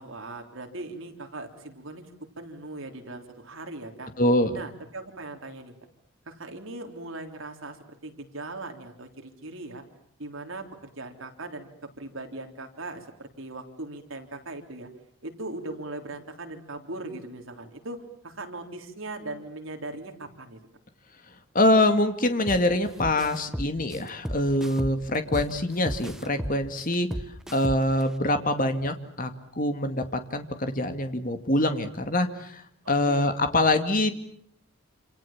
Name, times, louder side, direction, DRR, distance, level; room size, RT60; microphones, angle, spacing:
voice 1, 0.0-2.0 2.4-4.1 4.5-5.7 6.3-9.8 10.2-11.7 12.0-14.9 15.2-20.6 32.8-33.3, right 2 dB, 70° right, 4 dB, 3.6 m, -39 dB
voice 2, 4.2-4.6 21.5-27.1 27.5-29.3 29.6-34.1, left 1 dB, 40° left, 8 dB, 2.3 m, -24 dB
sound 1, 22.5-22.7 23.0-25.5 25.9-28.0, equal, ahead, 1.1 m, -33 dB
28.0 x 27.5 x 7.4 m, 0.64 s
head